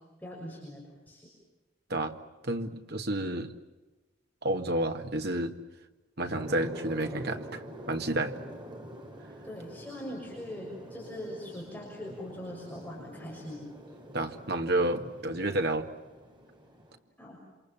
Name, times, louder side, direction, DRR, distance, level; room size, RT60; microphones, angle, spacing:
voice 1, 0.2-1.3 9.4-13.6 17.2-17.4, left 1 dB, 10° left, -4 dB, 6.5 m, -41 dB
voice 2, 2.4-3.5 4.4-5.6 6.2-7.6 7.9-8.4 14.1-15.9, right 1 dB, 55° right, 5 dB, 1.9 m, -30 dB
sound 1, 6.3-17.0, equal, 25° right, 4.2 m, -46 dB
27.5 x 27.0 x 7.4 m, 1.1 s
head